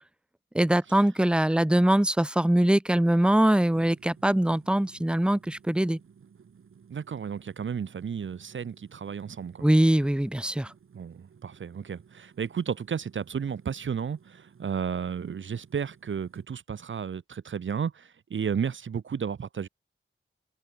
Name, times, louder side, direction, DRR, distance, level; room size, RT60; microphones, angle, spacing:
voice 1, 0.5-6.0 9.6-10.7, right 1 dB, 5° right, 0.7 m, -22 dB
sound 1, 3.7-16.5, right 6 dB, 90° right, 3.7 m, -56 dB
voice 2, 6.9-9.7 10.9-19.7, right 7 dB, 65° right, 1.2 m, -33 dB
wide cardioid pair, 165°, 21 cm